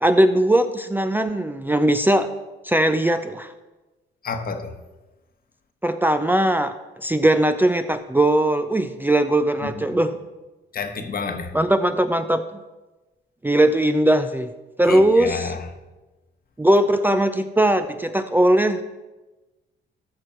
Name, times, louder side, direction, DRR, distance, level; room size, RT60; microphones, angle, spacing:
voice 1, 0.0-2.3 2.6-3.5 5.8-10.2 11.5-12.6 13.4-14.5 14.8-15.5 16.6-18.8, right 1 dB, 10° right, 0.5 m, -19 dB
voice 2, 4.2-4.7 9.6-9.7 10.7-11.5 14.9-15.7, left 5 dB, 50° left, 1.2 m, -29 dB
14.5 x 6.1 x 4.4 m
cardioid pair, 90°, 20 cm